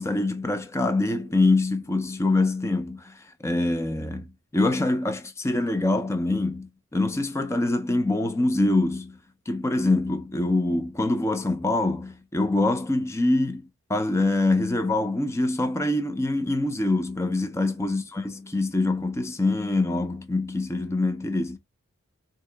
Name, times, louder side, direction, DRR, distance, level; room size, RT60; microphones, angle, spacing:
voice 1, 0.0-9.2 9.5-21.6, left 2 dB, 15° left, 0.4 m, -25 dB
3.7 x 2.8 x 3.3 m
head